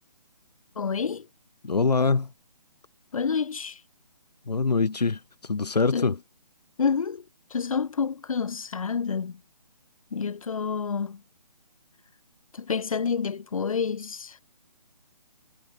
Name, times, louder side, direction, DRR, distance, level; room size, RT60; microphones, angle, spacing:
voice 1, 0.7-1.3 3.1-3.8 5.9-6.2 6.8-7.2 7.5-9.4 10.1-11.2 12.5-14.4, left 6 dB, 55° left, 6.7 m, -28 dB
voice 2, 1.6-2.3 4.5-6.2, left 4 dB, 80° left, 5.7 m, -24 dB
hypercardioid pair, 165°, 20 cm